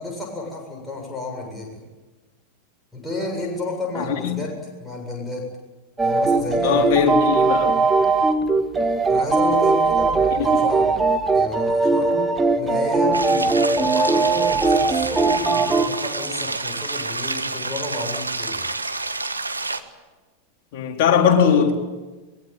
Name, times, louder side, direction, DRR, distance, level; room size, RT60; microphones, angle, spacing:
voice 1, 0.0-1.8 2.9-4.5 4.8-5.5 6.0-7.1 9.1-11.0 11.3-12.2 12.6-18.7, left 2 dB, 5° left, 7.6 m, -31 dB
voice 2, 3.9-4.5 6.6-7.8 10.3-10.5 20.7-21.7, left 7 dB, 50° left, 4.1 m, -20 dB
sound 1, 6.0-15.9, right 3 dB, 10° right, 1.8 m, -19 dB
sound 2, 13.1-19.8, right 3 dB, 80° right, 1.4 m, -29 dB
23.5 x 21.5 x 9.3 m
figure-of-eight pair, 90°, 0 cm